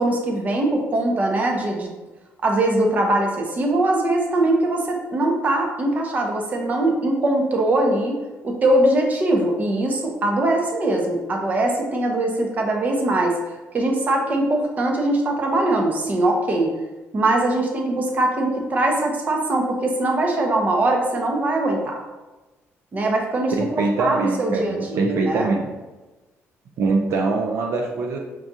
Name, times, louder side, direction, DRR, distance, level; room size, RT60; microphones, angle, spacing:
voice 1, 0.0-1.9 2.4-8.2 8.4-13.4 13.7-16.7 17.1-22.0 22.9-25.5, right 1 dB, 35° right, 1 dB, 0.7 m, -21 dB
voice 2, 23.6-25.7 26.8-28.2, right 3 dB, 70° right, 2 dB, 0.5 m, -23 dB
5.9 x 2.4 x 2.7 m, 1.1 s
cardioid pair, 135°, 5 cm